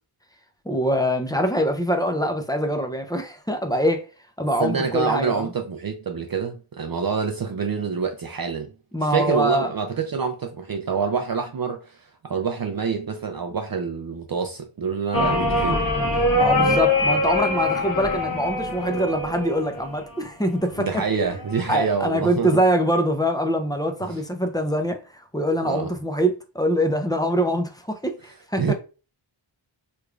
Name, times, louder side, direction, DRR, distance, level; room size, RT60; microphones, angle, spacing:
voice 1, 0.7-4.1 4.4-5.5 8.9-9.7 16.4-21.3 21.7-28.7, equal, 10° left, 0.5 m, -24 dB
voice 2, 4.6-8.7 9.1-15.8 20.8-22.6 24.1-24.2 25.7-25.9 28.6-28.7, right 6 dB, 50° right, 0.5 m, -26 dB
sound 1, 15.1-20.2 21.3-21.8, left 2 dB, 45° left, 1.0 m, -23 dB
3.5 x 3.1 x 2.4 m
wide cardioid pair, 55°, 48 cm